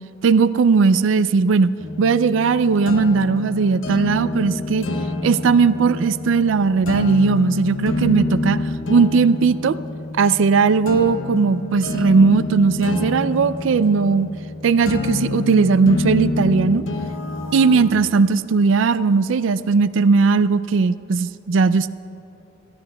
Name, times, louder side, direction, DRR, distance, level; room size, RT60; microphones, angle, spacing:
voice 1, 0.2-4.9 5.2-8.6 8.9-9.8 10.2-14.3 14.6-16.8 17.5-21.9, right 4 dB, 75° right, 15 dB, 0.4 m, -17 dB
sound 1, 1.8-17.9, left 2 dB, 85° left, 0.8 m, -28 dB
24.0 x 12.5 x 2.3 m, 2.7 s
head